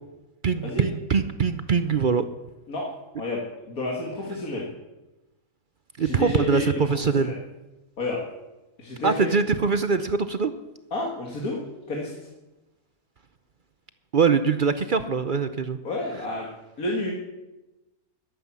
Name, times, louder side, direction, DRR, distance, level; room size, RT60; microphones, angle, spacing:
voice 1, 0.4-2.2 6.0-7.3 9.0-10.5 14.1-15.8, right 5 dB, 50° right, 11 dB, 0.6 m, -23 dB
voice 2, 3.7-4.7 6.0-7.3 8.0-8.2 8.8-9.3 10.9-11.6 11.9-12.1 15.8-16.5 16.8-17.1, left 2 dB, 70° left, -2 dB, 2.5 m, -30 dB
12.5 x 12.0 x 7.3 m, 1.0 s
omnidirectional pair, 1.6 m